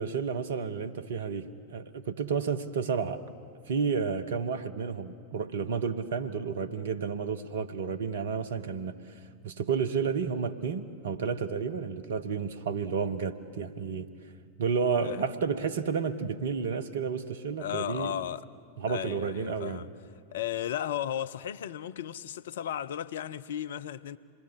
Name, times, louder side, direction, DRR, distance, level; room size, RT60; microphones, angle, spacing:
voice 1, 0.0-3.2 3.7-9.0 9.4-14.1 14.6-18.1 18.8-19.8, right 6 dB, 60° right, 1.1 m, -31 dB
voice 2, 17.6-18.5 18.9-19.9 20.3-24.2, left 10 dB, 60° left, 0.5 m, -35 dB
26.5 x 21.0 x 6.6 m
figure-of-eight pair, 90°, 0 cm